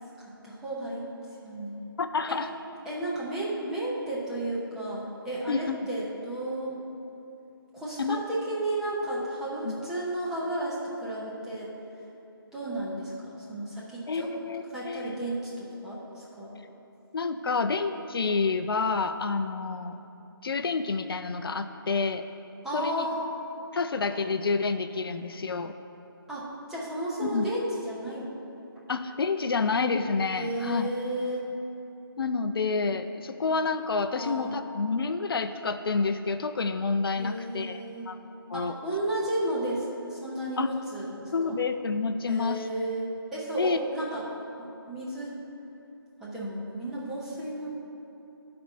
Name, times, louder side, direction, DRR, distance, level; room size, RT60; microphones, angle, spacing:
voice 1, 0.2-1.2 1.4-1.9 2.3-2.4 2.8-6.8 7.7-11.7 12.5-14.3 14.7-16.5 22.6-23.2 26.3-28.3 30.3-31.4 34.2-34.5 37.1-38.1 38.5-41.6 42.3-44.3 44.6-45.4 46.2-47.7, right 1 dB, 5° right, -8 dB, 0.8 m, -33 dB
voice 2, 2.0-2.5 5.5-5.8 8.0-8.2 9.6-9.8 14.1-15.2 17.1-20.0 20.4-22.2 22.7-23.1 23.7-25.7 27.2-27.5 28.9-30.9 32.2-38.2 38.5-38.7 40.6-40.7 41.3-42.7 43.6-43.8, left 4 dB, 70° left, 9 dB, 0.4 m, -28 dB
12.0 x 4.2 x 4.4 m, 2.9 s
figure-of-eight pair, 160°, 13 cm